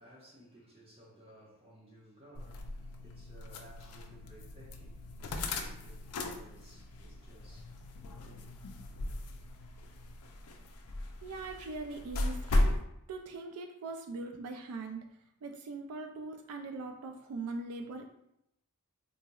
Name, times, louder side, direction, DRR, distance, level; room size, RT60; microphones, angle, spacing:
voice 1, 0.0-8.4, right 1 dB, 25° right, 1.0 m, -58 dB
sound 1, 2.3-12.8, left 1 dB, 80° left, 0.4 m, -36 dB
voice 2, 11.2-12.8 13.1-15.0 15.4-18.1, right 3 dB, 80° right, 0.4 m, -41 dB
3.9 x 2.8 x 2.3 m
head